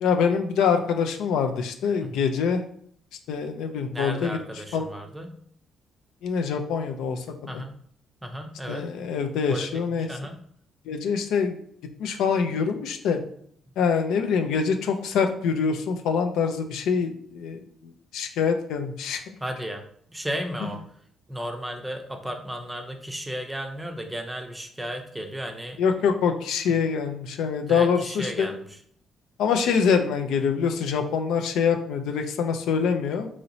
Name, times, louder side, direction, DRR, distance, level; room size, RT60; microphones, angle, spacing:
voice 1, 0.0-2.6 3.3-4.9 6.2-7.3 7.5-7.6 8.7-10.1 10.9-11.6 12.0-13.2 13.8-19.2 25.8-28.5 29.4-33.3, left 6 dB, 85° left, 5 dB, 0.4 m, -25 dB
voice 2, 3.9-5.3 7.5-7.8 8.2-8.9 9.5-10.4 19.4-19.8 20.1-20.8 21.3-25.8 27.7-28.6, equal, 10° right, 5 dB, 0.5 m, -34 dB
3.0 x 2.9 x 2.6 m, 0.63 s
cardioid pair, 90°, 0 cm